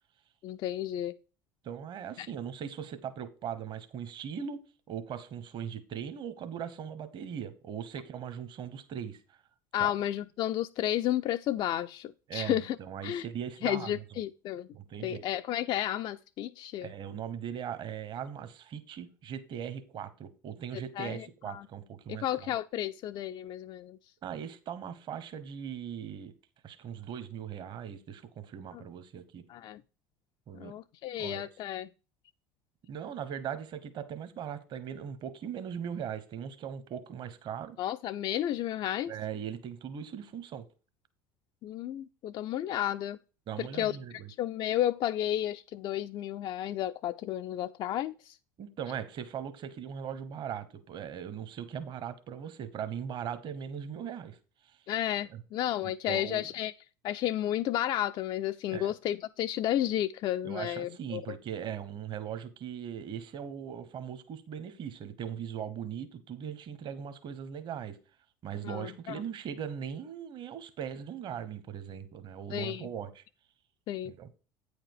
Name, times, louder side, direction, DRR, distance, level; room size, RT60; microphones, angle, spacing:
voice 1, 0.4-1.2 2.2-2.3 9.7-12.8 13.0-13.2 13.6-14.7 15.0-16.9 21.0-21.6 22.1-24.0 28.7-28.8 29.5-29.8 30.5-31.9 37.8-39.1 41.6-43.2 43.6-44.0 44.4-48.4 54.9-56.7 57.0-61.4 68.6-69.1 72.5-72.9 73.9-74.1, left 12 dB, 50° left, 0.4 m, -32 dB
voice 2, 1.6-9.4 9.8-9.9 12.3-14.2 14.7-15.3 16.8-22.5 24.2-26.3 26.6-29.4 30.5-30.7 31.2-31.5 32.9-37.8 39.1-40.7 43.5-44.3 48.6-54.4 54.6-54.8 55.3-55.4 55.8-56.5 58.7-58.9 60.4-68.0 68.4-73.2 74.0-74.3, right 8 dB, 45° right, 1.2 m, -39 dB
8.9 x 5.1 x 4.7 m
hypercardioid pair, 70°, 11 cm